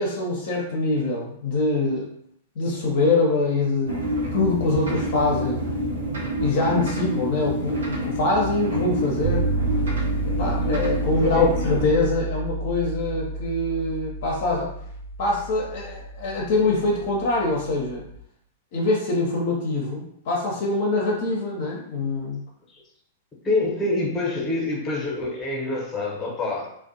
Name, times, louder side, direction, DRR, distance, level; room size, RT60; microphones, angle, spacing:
voice 1, 0.0-2.1 2.6-4.0 4.3-5.7 6.4-9.4 10.3-14.7 15.2-18.0 18.7-22.4, left 2 dB, 55° left, -2 dB, 0.6 m, -24 dB
sound 1, 3.8-11.9, equal, 70° right, 0.7 m, -28 dB
sound 2, 9.2-18.2, right 2 dB, 50° right, 0.3 m, -30 dB
voice 2, 11.3-11.6 22.7-22.8 23.4-26.8, left 2 dB, 20° left, -1 dB, 0.8 m, -26 dB
2.5 x 2.1 x 2.6 m, 0.71 s
figure-of-eight pair, 100°, 0 cm